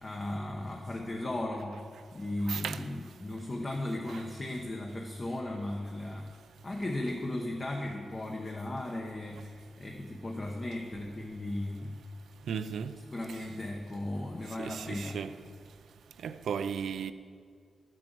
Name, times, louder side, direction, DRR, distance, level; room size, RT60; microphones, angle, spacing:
voice 1, 0.0-1.8 2.1-6.4 6.6-12.0 13.0-15.3, left 1 dB, 25° left, 0.9 m, -36 dB
voice 2, 12.5-12.9 14.6-15.3 16.2-17.1, right 7 dB, 80° right, 0.6 m, -35 dB
13.0 x 7.7 x 7.8 m
wide cardioid pair, 170°, 0 cm